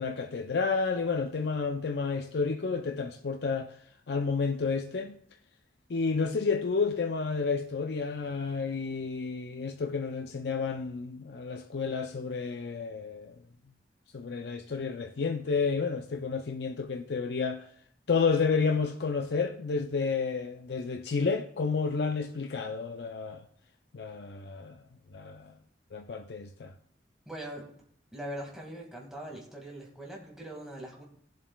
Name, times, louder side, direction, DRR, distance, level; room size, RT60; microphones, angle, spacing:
voice 1, 0.0-3.8 4.1-5.2 5.9-13.4 14.1-17.7 18.1-23.4 23.9-24.8 25.1-25.5 25.9-26.7, left 5 dB, 70° left, 0.5 m, -30 dB
voice 2, 27.3-27.7 28.1-31.0, right 1 dB, 5° right, 1.9 m, -41 dB
19.5 x 7.4 x 2.3 m
head